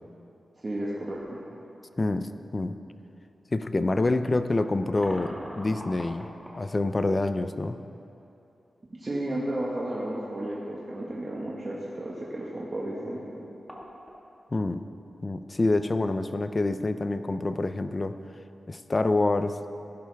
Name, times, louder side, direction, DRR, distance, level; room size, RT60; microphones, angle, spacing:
voice 1, 0.6-1.2 9.0-13.2, right 1 dB, 30° right, -6 dB, 1.5 m, -33 dB
sound 1, 1.2-1.3 2.1-2.2 4.3-6.6 9.1-9.2 9.5-9.6 13.0-13.1 13.3-14.2, equal, 5° left, 1.7 m, -42 dB
voice 2, 2.0-2.8 3.5-6.3 6.6-7.8 14.5-14.9 15.2-18.2 18.7-19.6, left 2 dB, 30° left, 10 dB, 0.5 m, -27 dB
15.5 x 11.0 x 3.5 m, 2.8 s
wide cardioid pair, 120°, 0 cm